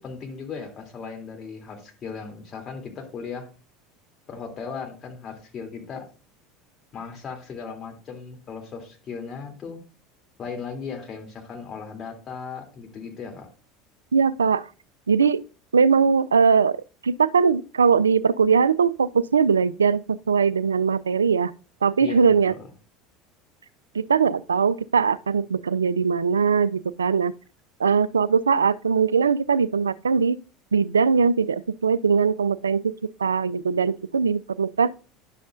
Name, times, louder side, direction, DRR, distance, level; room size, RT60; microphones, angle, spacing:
voice 1, 0.0-3.5 4.3-6.0 6.9-9.8 10.4-13.5 22.0-22.6, left 5 dB, 40° left, 3.0 m, -37 dB
voice 2, 14.1-14.7 15.1-15.4 15.7-16.8 17.0-21.5 21.8-22.5 23.9-27.3 27.8-30.4 30.7-32.9 33.2-34.9, right 5 dB, 90° right, 0.3 m, -21 dB
10.5 x 7.0 x 2.5 m
hypercardioid pair, 75°, 0 cm